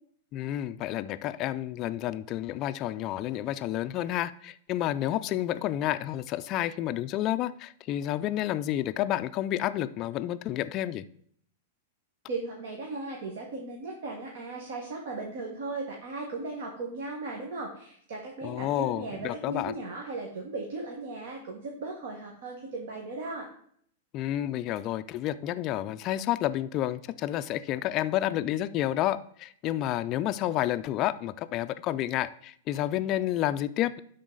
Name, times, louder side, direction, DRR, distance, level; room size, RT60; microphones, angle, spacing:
voice 1, 0.3-11.0 18.4-19.7 24.1-34.0, left 13 dB, 35° left, 11 dB, 0.3 m, -30 dB
voice 2, 12.3-23.5, right 3 dB, 70° right, 0 dB, 1.6 m, -37 dB
11.5 x 3.9 x 4.0 m, 0.63 s
hypercardioid pair, 135°, 0 cm